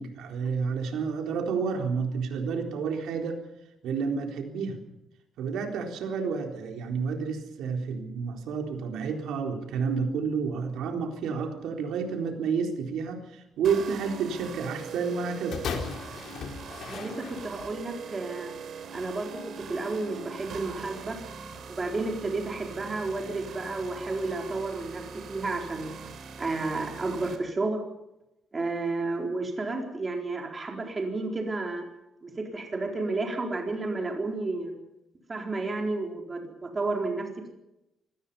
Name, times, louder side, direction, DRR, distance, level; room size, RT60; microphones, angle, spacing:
voice 1, 0.0-3.4 3.8-4.8 5.4-15.6, right 5 dB, 85° right, 3 dB, 3.9 m, -30 dB
sound 1, 13.6-27.4, right 6 dB, 55° right, 3.5 m, -42 dB
sound 2, 15.5-17.8 18.6-18.7, left 6 dB, 60° left, 4.0 m, -36 dB
voice 2, 16.9-18.5 18.9-21.2 21.7-25.9 26.4-27.8 28.5-31.8 32.2-34.7 35.3-37.3, right 3 dB, 20° right, 1 dB, 4.2 m, -31 dB
26.0 x 19.0 x 5.6 m, 0.90 s
cardioid pair, 160°, 0 cm